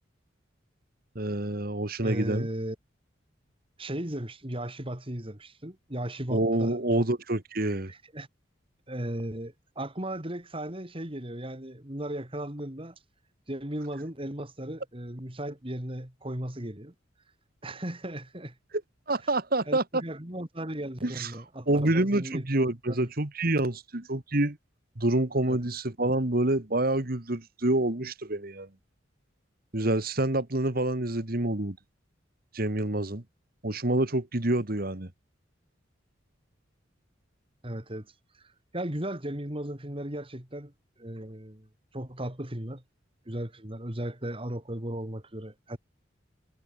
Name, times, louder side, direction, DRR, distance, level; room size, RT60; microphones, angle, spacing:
voice 1, 1.2-2.5 6.3-7.9 19.1-20.0 21.0-21.3 21.7-24.6 25.0-28.7 29.7-31.8 32.5-33.2 33.6-35.1, right 1 dB, 50° right, 1.9 m, -27 dB
voice 2, 2.0-2.8 3.8-7.1 7.9-8.3 8.9-13.0 13.5-16.9 17.6-18.5 19.7-22.5 22.9-23.1 25.5-25.6 37.6-38.1 38.7-40.7 41.0-41.7 41.9-42.8 43.2-45.8, right 1 dB, 30° right, 3.2 m, -36 dB
head